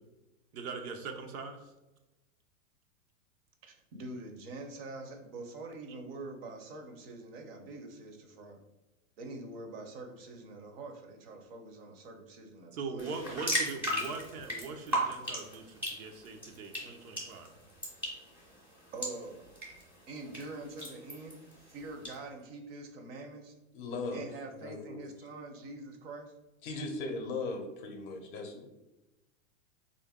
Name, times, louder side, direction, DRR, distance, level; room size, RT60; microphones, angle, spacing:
voice 1, 0.5-1.6 12.7-17.5, right 4 dB, 90° right, 4 dB, 0.8 m, -41 dB
voice 2, 3.6-8.6 9.2-13.1 18.9-19.5 20.1-23.5 24.1-26.3, right 2 dB, 45° right, 4 dB, 0.7 m, -45 dB
sound 1, 13.0-22.1, equal, 5° right, 0.6 m, -38 dB
voice 3, 23.7-24.2 24.5-25.0 26.6-28.6, left 3 dB, 40° left, 3 dB, 0.6 m, -38 dB
3.8 x 2.6 x 3.5 m, 1.0 s
supercardioid pair, 160°, 42 cm